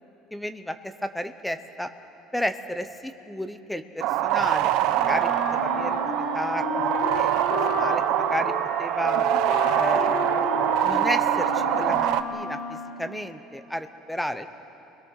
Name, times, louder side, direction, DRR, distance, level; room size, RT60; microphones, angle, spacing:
voice 1, 0.3-1.9 2.3-7.4 7.7-8.5 8.8-9.3 9.7-10.5 10.8-14.5, equal, ahead, 9 dB, 0.8 m, -32 dB
sound 1, 4.0-12.2, right 12 dB, 55° right, 0.8 m, -24 dB
Wind instrument woodwind instrument, 5.0-13.1, left 2 dB, 40° left, 5.3 m, -32 dB
28.5 x 21.5 x 6.4 m, 3.0 s
cardioid pair, 180°, 0 cm